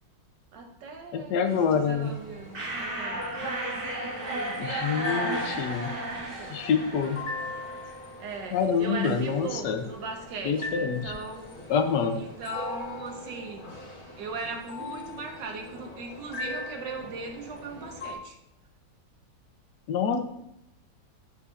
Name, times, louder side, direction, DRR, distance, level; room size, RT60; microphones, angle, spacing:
voice 1, 0.5-3.2 4.0-6.7 8.2-11.5 12.1-13.8 14.2-18.4, right 4 dB, 90° right, 3 dB, 1.7 m, -39 dB
voice 2, 1.1-2.1 4.6-5.9 6.5-7.2 8.5-9.8 10.4-11.1 11.7-12.2 19.9-20.2, left 6 dB, 75° left, 7 dB, 1.3 m, -26 dB
sound 1, 1.5-18.1, left 2 dB, 40° left, 1.6 m, -40 dB
sound 2, 2.5-8.1, right 1 dB, 35° right, 1.3 m, -34 dB
11.0 x 5.5 x 2.5 m, 0.80 s
omnidirectional pair, 1.9 m